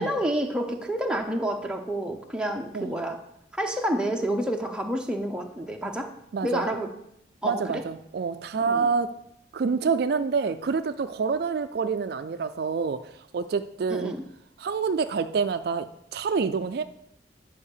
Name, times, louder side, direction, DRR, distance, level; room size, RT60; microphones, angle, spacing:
voice 1, 0.0-3.2 3.6-6.1 6.4-6.9 7.4-7.8 8.6-8.9 13.9-14.2, right 1 dB, 5° right, 2 dB, 0.8 m, -29 dB
voice 2, 6.3-6.7 7.4-9.2 9.5-14.2 14.6-16.8, right 5 dB, 60° right, 11 dB, 0.4 m, -27 dB
9.9 x 4.7 x 6.6 m, 0.79 s
head